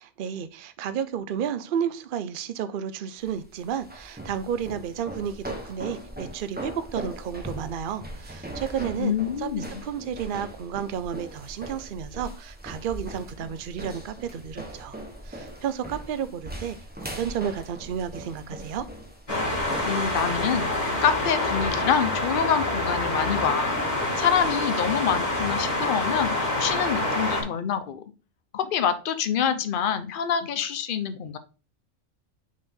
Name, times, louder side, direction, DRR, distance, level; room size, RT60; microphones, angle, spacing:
voice 1, 0.0-9.1 9.4-15.0 15.2-18.9, right 8 dB, 55° right, 12 dB, 0.6 m, -32 dB
sound 1, 3.2-22.4, right 1 dB, 10° right, 1.0 m, -40 dB
voice 2, 9.0-9.8 19.8-20.7 21.0-23.8 24.2-28.0 28.5-31.4, left 8 dB, 50° left, 10 dB, 0.8 m, -26 dB
sound 2, 19.3-27.4, left 1 dB, 35° left, 2.8 m, -27 dB
6.2 x 4.5 x 3.6 m, 0.34 s
omnidirectional pair, 1.4 m